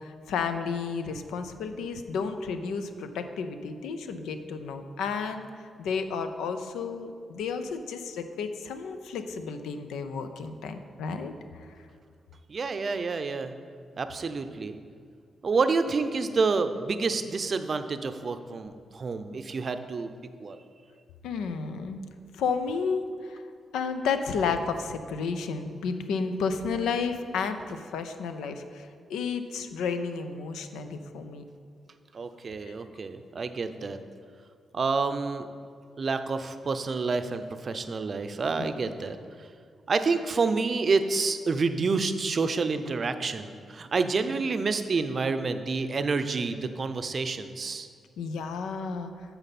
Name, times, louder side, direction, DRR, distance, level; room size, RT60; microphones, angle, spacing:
voice 1, 0.0-11.8 21.2-22.0 22.3-23.4 23.7-31.4 32.7-32.8 38.6-38.7 48.2-49.1, left 5 dB, 80° left, 8 dB, 0.5 m, -32 dB
voice 2, 12.5-13.5 14.0-14.8 15.4-20.1 20.4-20.6 32.1-34.0 34.7-35.5 36.0-39.2 39.9-47.9, right 4 dB, 50° right, 9 dB, 0.5 m, -28 dB
8.8 x 5.7 x 4.2 m, 2.2 s
supercardioid pair, 45°, 0 cm